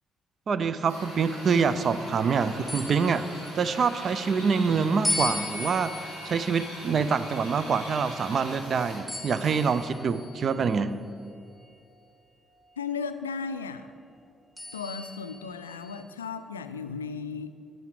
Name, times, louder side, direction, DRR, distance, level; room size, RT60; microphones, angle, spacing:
voice 1, 0.5-11.0, right 5 dB, 50° right, 13 dB, 0.5 m, -26 dB
Drill, 0.8-10.1, equal, 90° right, 2.7 m, -42 dB
sound 1, 2.7-4.2 5.0-8.5 9.1-10.8 11.5-11.6 14.6-16.0, left 1 dB, 10° right, 2.8 m, -37 dB
voice 2, 12.8-13.9 14.7-17.5, left 5 dB, 85° left, 10 dB, 0.3 m, -35 dB
10.5 x 9.4 x 4.8 m, 2.5 s
figure-of-eight pair, 40°, 0 cm